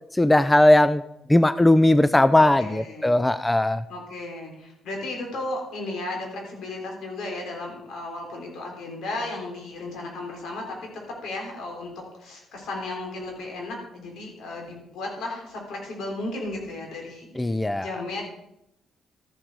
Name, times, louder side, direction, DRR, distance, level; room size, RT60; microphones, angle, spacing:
voice 1, 0.1-1.0 1.3-3.8 17.4-17.9, left 1 dB, 10° left, 15 dB, 0.4 m, -18 dB
voice 2, 2.4-3.2 3.9-18.2, left 2 dB, 75° left, 1 dB, 3.6 m, -35 dB
13.0 x 7.6 x 4.7 m, 0.83 s
cardioid pair, 90°, 0 cm